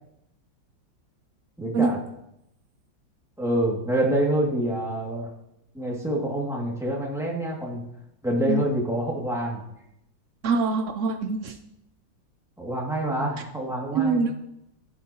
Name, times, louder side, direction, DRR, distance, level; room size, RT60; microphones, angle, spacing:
voice 1, 1.6-2.0 3.4-5.3 5.7-7.8 8.2-9.6 12.6-14.2, right 1 dB, ahead, -3 dB, 2.1 m, -26 dB
voice 2, 10.4-11.5 13.9-14.3, right 4 dB, 85° right, 7 dB, 0.6 m, -24 dB
11.5 x 11.0 x 2.9 m, 0.81 s
omnidirectional pair, 2.0 m